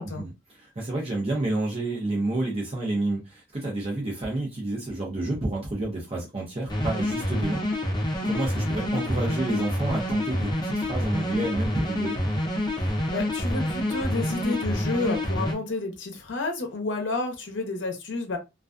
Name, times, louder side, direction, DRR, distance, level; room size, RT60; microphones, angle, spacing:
voice 1, 0.0-7.6 8.2-12.2, right 2 dB, 30° right, 0.7 m, -29 dB
sound 1, 6.7-15.5, left 1 dB, 25° left, 0.6 m, -27 dB
voice 2, 12.8-18.4, left 3 dB, 85° left, 0.6 m, -30 dB
2.4 x 2.2 x 2.5 m
head